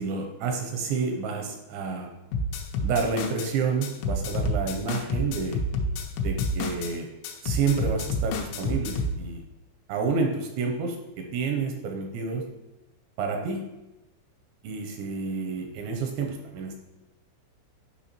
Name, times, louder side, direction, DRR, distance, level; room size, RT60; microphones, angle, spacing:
voice 1, 0.0-2.1 2.8-5.6 6.2-7.1 7.4-9.4 9.9-12.4 13.2-13.6 14.6-16.8, right 4 dB, 85° right, 3 dB, 2.7 m, -29 dB
sound 1, 2.3-3.5 3.8-6.9 7.2-9.2, left 1 dB, 85° left, 3.3 m, -29 dB
10.5 x 5.6 x 3.0 m, 0.99 s
omnidirectional pair, 5.6 m